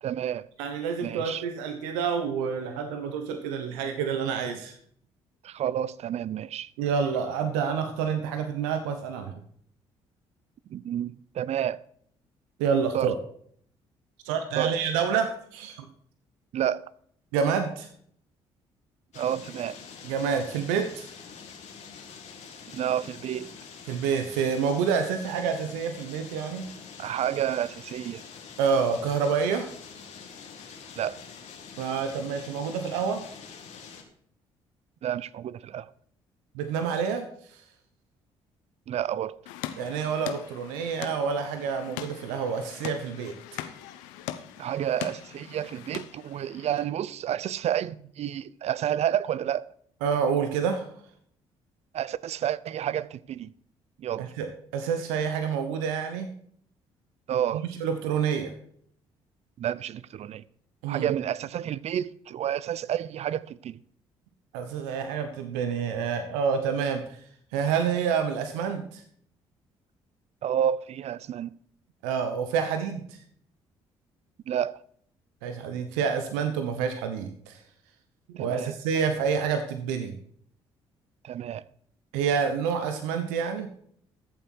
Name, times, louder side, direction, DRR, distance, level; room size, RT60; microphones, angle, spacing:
voice 1, 0.0-0.5 1.0-1.4 5.4-6.7 10.7-11.8 12.9-13.1 14.6-14.7 16.5-16.9 19.2-19.8 22.7-23.5 27.0-28.2 31.0-31.2 35.0-35.9 38.9-39.4 44.6-49.6 51.9-53.5 54.0-54.3 57.3-57.7 59.6-60.4 60.9-63.8 70.4-71.5 74.5-74.8 78.4-78.7 81.2-81.6, right 10 dB, 55° right, 0.6 m, -30 dB
voice 2, 0.6-4.8 6.8-9.4 12.6-13.1 14.2-15.9 17.3-17.9 20.0-21.1 23.9-26.7 28.6-29.7 31.8-33.3 36.5-37.6 39.8-43.7 50.0-50.9 54.2-56.3 57.5-58.5 60.8-61.1 64.5-67.2 67.5-69.0 72.0-73.2 75.4-77.6 78.3-80.1 82.1-83.7, right 6 dB, 85° right, 1.1 m, -28 dB
sound 1, 19.1-34.0, left 6 dB, 65° left, 2.3 m, -45 dB
sound 2, 39.5-46.8, left 12 dB, 85° left, 0.8 m, -41 dB
14.0 x 7.5 x 4.6 m
hypercardioid pair, 55°, 13 cm